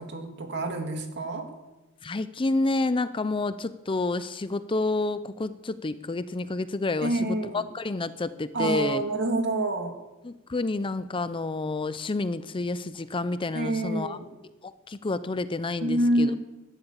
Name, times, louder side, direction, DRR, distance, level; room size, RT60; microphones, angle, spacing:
voice 1, 0.0-1.5 7.0-7.7 8.5-9.9 13.5-14.3 15.8-16.4, right 1 dB, 55° right, 4 dB, 2.2 m, -27 dB
voice 2, 2.0-9.1 10.2-14.2 14.6-16.3, left 2 dB, 25° left, 13 dB, 0.5 m, -29 dB
16.5 x 12.0 x 7.3 m, 1.0 s
head